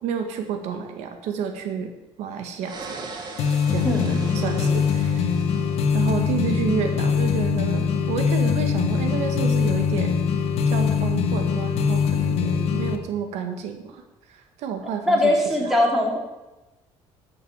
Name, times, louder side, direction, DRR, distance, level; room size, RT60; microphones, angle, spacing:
voice 1, 0.0-1.9 2.2-3.1 3.7-5.3 5.9-10.1 10.7-14.0 14.3-15.3 15.6-15.8, right 7 dB, 85° right, 6 dB, 1.8 m, -30 dB
sound 1, 2.6-6.5, right 4 dB, 40° right, 2.1 m, -40 dB
sound 2, 3.4-13.0, left 6 dB, 65° left, 1.5 m, -22 dB
voice 2, 3.8-4.2 15.1-16.2, left 1 dB, 5° right, 0 dB, 3.2 m, -21 dB
12.5 x 8.4 x 7.4 m, 1.0 s
cardioid pair, 140°, 11 cm